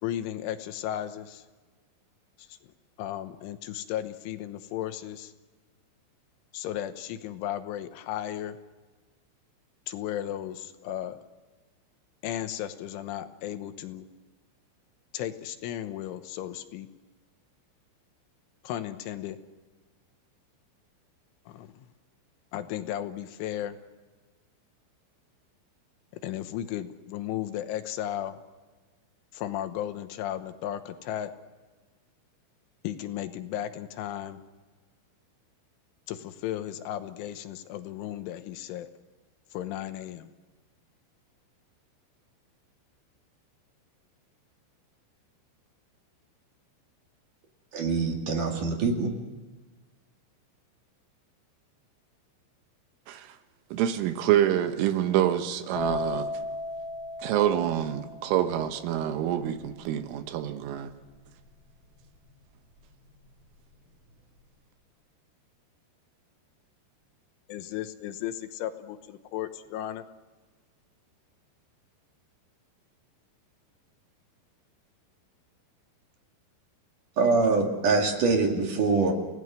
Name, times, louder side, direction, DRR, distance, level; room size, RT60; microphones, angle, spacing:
voice 1, 0.0-1.4 2.4-2.6 3.0-5.3 6.5-8.6 9.9-11.2 12.2-14.1 15.1-16.9 18.6-19.4 21.5-21.9 22.5-23.8 26.2-28.4 29.3-31.3 32.8-34.4 36.1-38.9 39.5-40.3 67.5-70.0, left 12 dB, 85° left, 3.4 m, -35 dB
voice 2, 47.7-49.1 77.2-79.1, right 4 dB, 50° right, 3.4 m, -24 dB
voice 3, 53.7-56.3 57.2-60.9, right 11 dB, 85° right, 3.7 m, -26 dB
sound 1, 55.8-63.3 63.6-64.1, left 3 dB, 45° left, 9.1 m, -37 dB
29.5 x 17.5 x 6.5 m
omnidirectional pair, 5.7 m